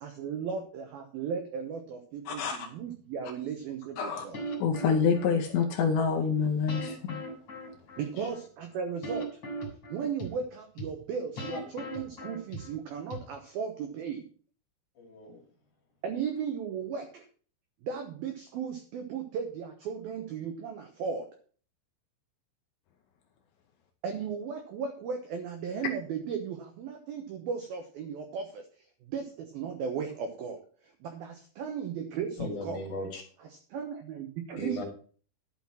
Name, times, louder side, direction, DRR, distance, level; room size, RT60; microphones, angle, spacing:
voice 1, 0.0-4.4 8.0-9.3 9.9-14.3 16.0-17.3 17.8-21.3 24.0-28.6 29.1-30.6 30.8-32.8 33.7-34.8, right 6 dB, 80° right, 6 dB, 2.1 m, -36 dB
voice 2, 2.3-2.6 4.0-4.2 4.6-7.2, left 6 dB, 80° left, 3 dB, 2.7 m, -27 dB
sound 1, 4.3-5.7 6.7-8.4 9.0-10.3 10.8-10.9 11.4-12.8 13.1-13.2, right 1 dB, 25° left, 3.5 m, -38 dB
voice 3, 15.0-15.4 32.4-33.2 34.6-34.8, left 2 dB, 45° left, 1 dB, 3.1 m, -38 dB
11.5 x 5.9 x 6.0 m, 0.43 s
omnidirectional pair, 5.8 m